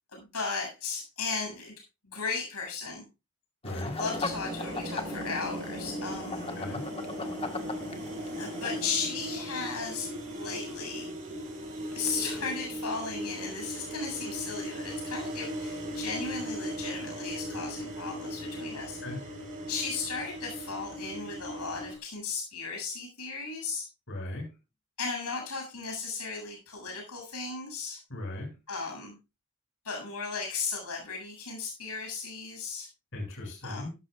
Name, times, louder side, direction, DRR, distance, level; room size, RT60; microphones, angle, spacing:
voice 1, 0.1-1.8 2.0-3.0 3.7-6.4 8.3-11.1 11.9-19.0 19.7-23.9 25.0-28.0 28.7-29.2 29.8-32.9 33.6-33.9, left 4 dB, 90° left, 1 dB, 7.9 m, -36 dB
voice 2, 3.6-4.0 6.6-6.8 19.0-19.2 24.1-24.5 28.1-28.5 33.1-33.9, left 1 dB, 55° left, 0 dB, 7.3 m, -37 dB
sound 1, 3.6-8.9, left 3 dB, 25° left, 1.6 m, -38 dB
sound 2, 4.0-22.0, equal, 35° right, 6.5 m, -38 dB
17.0 x 13.5 x 2.5 m, 0.29 s
head